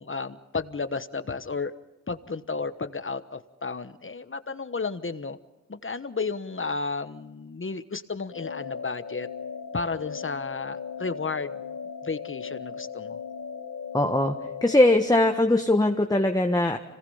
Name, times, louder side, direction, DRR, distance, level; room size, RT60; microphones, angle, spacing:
voice 1, 0.0-1.7 2.1-5.4 5.7-9.3 9.7-11.6 12.0-13.2, left 4 dB, 40° left, 11 dB, 1.2 m, -33 dB
sound 1, 8.3-15.0, left 6 dB, 85° left, 1.9 m, -37 dB
voice 2, 13.9-14.3 14.6-16.8, left 1 dB, 10° left, 4 dB, 1.4 m, -21 dB
26.0 x 19.0 x 5.6 m, 1.0 s
cardioid pair, 40°, 30 cm